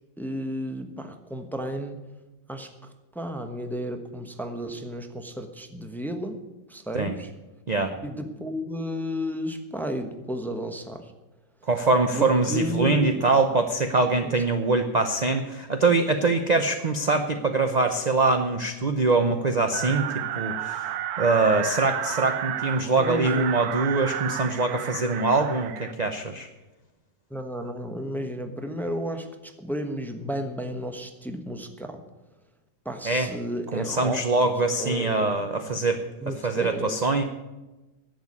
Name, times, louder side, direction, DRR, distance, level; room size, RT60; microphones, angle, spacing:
voice 1, 0.2-2.1 2.5-6.4 6.7-7.3 8.0-11.1 12.1-13.3 14.2-14.4 23.0-23.6 27.3-32.0 32.8-34.5 34.8-35.3 36.2-36.9, equal, ahead, 7 dB, 0.8 m, -33 dB
voice 2, 11.7-20.0 20.4-20.8 21.2-26.5 33.0-33.3 33.7-37.2, right 3 dB, 50° right, 6 dB, 0.5 m, -23 dB
sound 1, 19.7-25.9, right 11 dB, 70° right, 1.1 m, -32 dB
11.0 x 8.1 x 9.7 m, 1.1 s
omnidirectional pair, 1.9 m